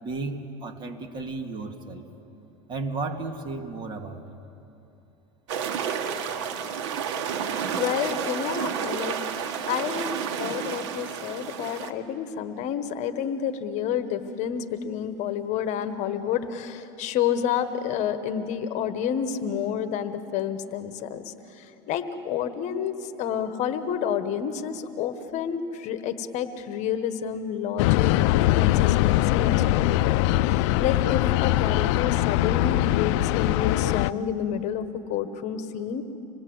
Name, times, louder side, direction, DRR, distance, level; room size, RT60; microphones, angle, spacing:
voice 1, 0.0-2.0 2.7-4.2, right 3 dB, 30° right, 4 dB, 2.0 m, -33 dB
sound 1, 5.5-11.9, right 7 dB, 85° right, 1.5 m, -30 dB
voice 2, 7.8-9.2 9.7-36.0, left 8 dB, 50° left, 10 dB, 1.3 m, -29 dB
sound 2, 27.8-34.1, left 16 dB, 75° left, 0.5 m, -22 dB
26.0 x 20.0 x 7.9 m, 2.9 s
supercardioid pair, 125°, 15 cm